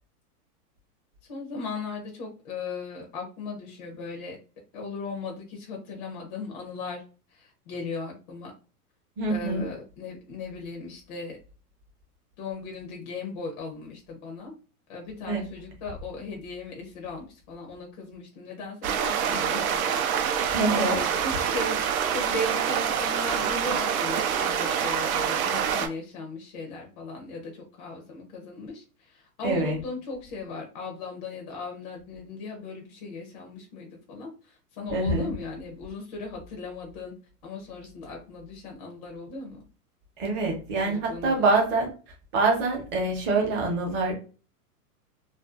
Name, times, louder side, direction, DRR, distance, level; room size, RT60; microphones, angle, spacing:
voice 1, 1.3-4.4 4.7-7.0 7.3-8.5 9.3-11.4 12.4-14.5 14.9-37.1 37.4-39.6 40.8-41.6, left 3 dB, 30° left, 1 dB, 0.4 m, -37 dB
voice 2, 9.2-9.7 15.3-15.4 20.5-21.0 29.4-29.8 34.9-35.3 40.2-41.9 42.3-44.1, right 3 dB, 25° right, 0 dB, 0.7 m, -25 dB
sound 1, 18.8-25.9, right 8 dB, 65° right, 0.6 m, -26 dB
2.5 x 2.2 x 2.3 m, 0.36 s
hypercardioid pair, 140°, 46 cm